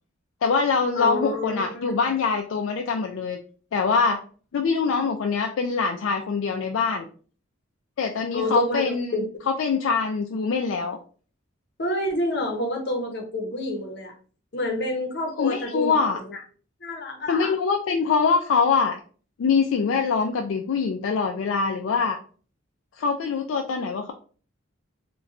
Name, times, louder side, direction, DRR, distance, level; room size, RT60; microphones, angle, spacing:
voice 1, 0.4-3.4 3.7-4.2 4.5-7.1 8.0-9.1 9.5-11.0 15.4-16.2 17.3-19.0 19.4-22.2 23.0-24.1, left 5 dB, 75° left, 3 dB, 0.3 m, -24 dB
voice 2, 0.9-2.0 8.3-9.4 11.8-14.1 14.5-16.4 16.8-17.5, left 1 dB, 55° left, 3 dB, 0.7 m, -28 dB
4.0 x 2.2 x 2.4 m, 0.41 s
head